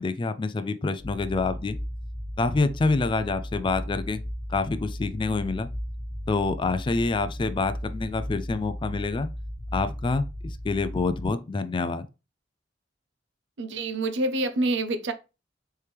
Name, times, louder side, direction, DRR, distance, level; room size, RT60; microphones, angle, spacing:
voice 1, 0.0-1.8 2.4-4.2 4.5-5.7 6.3-9.3 9.7-12.1, left 3 dB, 25° left, 0.3 m, -27 dB
sound 1, 1.0-11.3, equal, 10° right, 1.1 m, -36 dB
voice 2, 13.6-15.1, right 2 dB, 70° right, 0.6 m, -27 dB
4.4 x 3.4 x 3.2 m
head